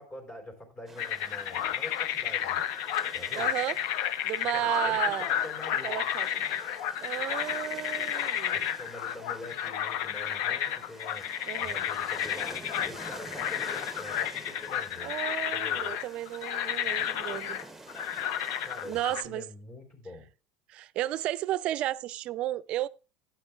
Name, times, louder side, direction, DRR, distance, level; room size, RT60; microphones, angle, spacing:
voice 1, 0.0-2.7 3.1-3.5 4.5-5.9 8.5-11.3 11.6-15.2 15.5-15.9 18.6-19.0 19.2-20.3, left 2 dB, 35° left, 3.7 m, -45 dB
sound 1, 0.9-19.2, right 3 dB, 10° right, 0.8 m, -49 dB
sound 2, 1.0-19.2, left 9 dB, 65° left, 0.6 m, -32 dB
voice 2, 3.3-5.3 5.8-6.4 7.0-8.7 11.5-11.8 15.0-17.6 18.8-19.5 20.7-22.9, right 14 dB, 50° right, 0.4 m, -33 dB
11.5 x 8.9 x 2.4 m
supercardioid pair, 95°, 2 cm